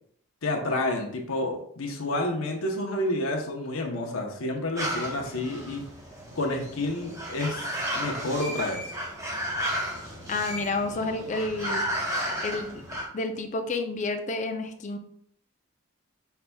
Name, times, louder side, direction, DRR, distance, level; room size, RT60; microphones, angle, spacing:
voice 1, 0.4-5.8 6.4-8.9, left 1 dB, 75° left, 2 dB, 0.8 m, -29 dB
sound 1, 4.8-13.1, equal, 15° right, 0.7 m, -33 dB
voice 2, 10.3-11.8 12.4-12.8 13.1-15.0, left 3 dB, 35° left, 5 dB, 0.4 m, -30 dB
5.7 x 3.4 x 2.2 m, 0.66 s
head